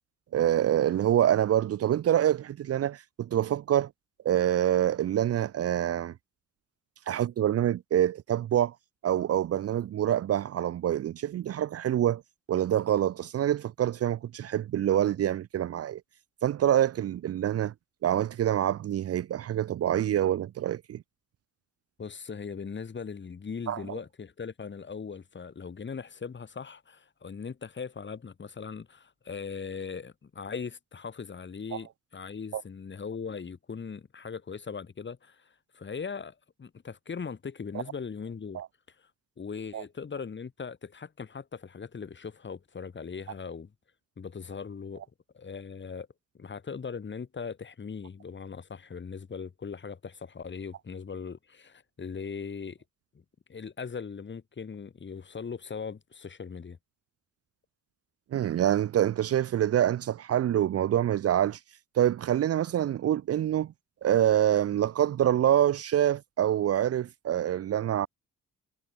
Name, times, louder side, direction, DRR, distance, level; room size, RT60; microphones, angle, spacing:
voice 1, 0.3-3.9 4.2-6.1 7.1-8.7 9.0-12.2 12.5-16.0 16.4-17.7 18.0-21.0 23.7-23.8 31.7-31.8 32.5-32.6 38.5-38.7 39.7-39.8 58.3-61.6 62.0-63.7 64.0-68.1, right 11 dB, 50° right, 0.7 m, -26 dB
voice 2, 22.0-38.6 39.0-39.1 39.4-43.7 44.2-45.1 45.3-46.1 46.3-52.8 53.5-56.8, left 5 dB, 40° left, 5.1 m, -39 dB
cardioid pair, 90°, 30 cm